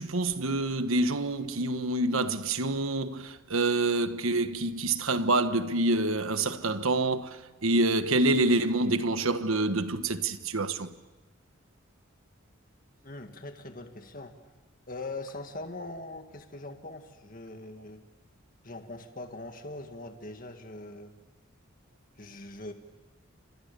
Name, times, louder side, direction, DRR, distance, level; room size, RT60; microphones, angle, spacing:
voice 1, 0.0-7.3 7.6-10.9, right 2 dB, 85° right, 1.4 m, -27 dB
voice 2, 13.0-14.3 14.9-18.0 18.6-21.2 22.2-22.7, left 2 dB, 40° left, 1.9 m, -41 dB
29.0 x 26.5 x 6.9 m
head